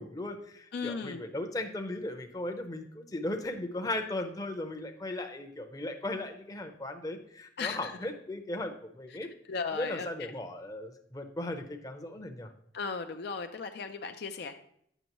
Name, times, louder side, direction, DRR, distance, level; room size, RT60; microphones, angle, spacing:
voice 1, 0.0-9.3 9.8-12.5, left 1 dB, 20° left, 5 dB, 0.6 m, -37 dB
voice 2, 0.7-1.2 7.6-8.0 9.1-9.2 9.4-10.3 12.7-14.6, left 5 dB, 60° left, 7 dB, 0.4 m, -36 dB
9.0 x 6.2 x 3.0 m, 0.70 s
head